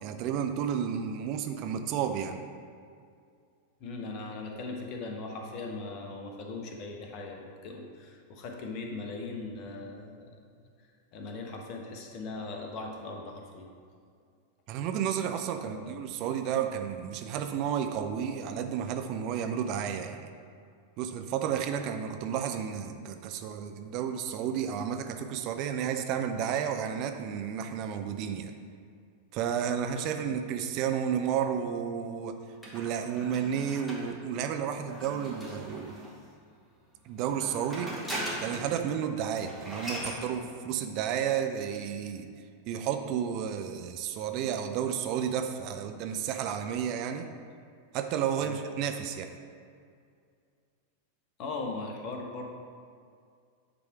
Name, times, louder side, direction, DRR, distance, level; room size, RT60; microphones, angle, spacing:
voice 1, 0.0-2.4 14.7-20.3 21.0-28.5 29.3-32.4 32.7-36.0 37.0-37.9 38.4-42.3 42.7-47.3 47.9-49.3, right 8 dB, 40° right, 6 dB, 0.5 m, -32 dB
voice 2, 3.8-10.3 11.1-13.7 15.6-15.9 48.4-48.6 51.4-52.5, left 3 dB, 40° left, 1 dB, 1.0 m, -39 dB
sound 1, 32.6-36.3 37.2-38.8 39.1-39.2 39.4-40.2, right 1 dB, 5° left, 1.8 m, -40 dB
9.5 x 3.4 x 4.7 m, 2.3 s
figure-of-eight pair, 90°, 0 cm